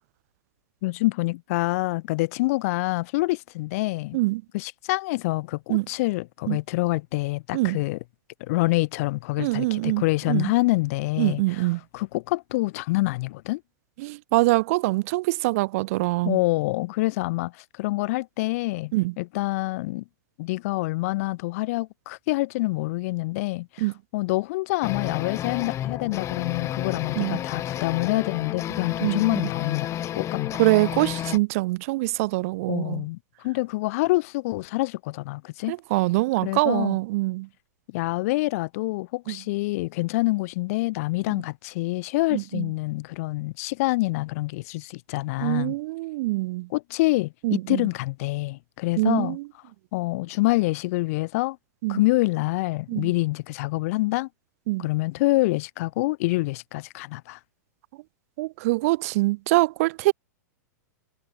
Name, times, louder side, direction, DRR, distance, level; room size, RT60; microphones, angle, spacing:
voice 1, 0.8-4.2 4.5-8.0 8.4-11.7 11.9-13.6 16.2-20.0 20.4-23.8 24.1-29.9 30.1-30.6 32.7-33.2 33.4-35.8 36.4-37.0 37.9-45.7 46.7-49.4 49.9-51.6 51.9-54.3 54.8-57.4, left 21 dB, 50° left, 6.8 m, -26 dB
voice 2, 9.4-10.5 11.2-11.8 14.0-16.4 18.9-19.1 23.8-23.9 27.2-27.4 29.0-29.2 30.6-33.1 35.7-37.5 39.3-39.4 42.3-42.7 45.4-46.7 47.4-47.9 49.0-49.5 51.8-52.0 52.9-53.1 54.7-54.9 58.4-60.1, right 21 dB, 50° right, 1.8 m, -24 dB
sound 1, 24.8-31.4, left 12 dB, 30° left, 2.4 m, -31 dB
figure-of-eight pair, 105°, 10 cm